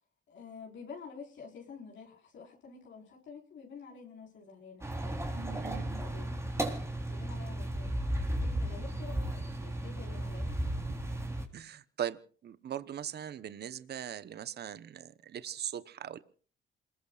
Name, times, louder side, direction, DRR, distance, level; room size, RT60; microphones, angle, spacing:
voice 1, 0.3-6.4 7.1-10.7, left 5 dB, 70° left, -1 dB, 5.0 m, -49 dB
sound 1, 4.8-11.5, right 1 dB, 15° right, 3.8 m, -34 dB
voice 2, 5.3-6.0 10.9-11.0 11.5-16.2, right 10 dB, 55° right, 13 dB, 1.0 m, -40 dB
27.5 x 21.5 x 2.5 m, 0.42 s
cardioid pair, 90°, 20 cm